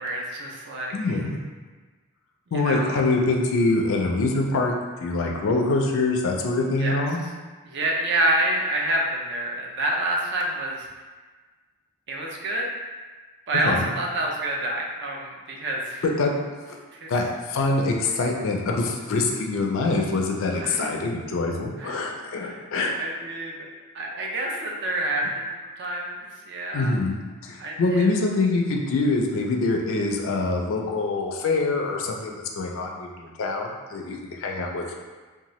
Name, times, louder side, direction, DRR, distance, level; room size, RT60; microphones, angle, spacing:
voice 1, 0.0-1.2 2.5-3.0 6.8-7.0 7.6-10.9 12.1-12.7 13.5-16.0 16.9-17.1 20.5-21.0 21.8-21.9 22.4-22.6 23.0-23.7 23.9-25.3 25.8-26.9 27.6-28.1, right 1 dB, 50° right, -1 dB, 0.4 m, -27 dB
voice 2, 0.9-1.4 2.5-4.7 5.0-7.2 13.6-13.9 16.0-16.3 16.7-16.8 17.1-22.9 26.7-27.2 27.4-34.9, left 3 dB, 60° left, 1 dB, 0.4 m, -24 dB
2.7 x 2.2 x 3.0 m, 1.4 s
head